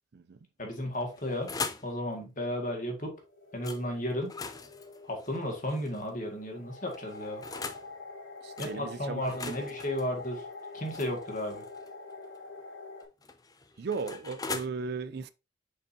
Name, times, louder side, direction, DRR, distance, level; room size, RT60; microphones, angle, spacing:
voice 1, 0.6-1.5 1.8-3.2 3.5-4.3 5.0-7.4 8.6-10.5 10.7-11.6, left 1 dB, 40° left, 1.9 m, -34 dB
sound 1, 0.9-1.9 3.6-3.8 4.2-6.1 6.9-7.9 8.6-8.7 9.2-11.9 13.0-14.7, left 4 dB, 20° left, 0.5 m, -41 dB
sound 2, 3.2-13.1, left 3 dB, 80° left, 3.6 m, -46 dB
voice 2, 8.4-9.5 13.8-15.3, right 4 dB, 50° right, 0.4 m, -36 dB
6.9 x 5.2 x 2.8 m
head